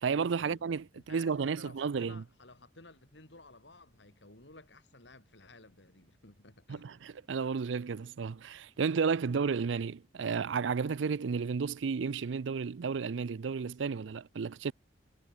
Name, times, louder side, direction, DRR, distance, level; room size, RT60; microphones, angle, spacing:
voice 1, 0.0-2.2 6.7-14.7, right 5 dB, 90° right, 0.5 m, -32 dB
voice 2, 0.9-6.9, left 2 dB, 75° left, 4.3 m, -55 dB
head